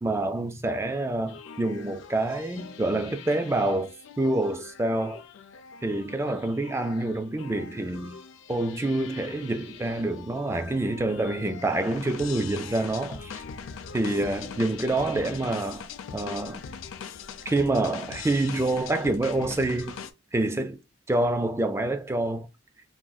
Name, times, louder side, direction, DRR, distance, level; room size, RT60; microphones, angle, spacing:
voice 1, 0.0-3.9 4.2-5.2 5.8-8.2 8.5-13.4 13.9-15.9 16.1-16.6 17.5-19.9 20.3-20.8 21.1-22.5, right 2 dB, 15° right, 0.3 m, -27 dB
sound 1, 1.3-20.1, left 6 dB, 80° left, 0.4 m, -42 dB
3.7 x 2.4 x 2.2 m
head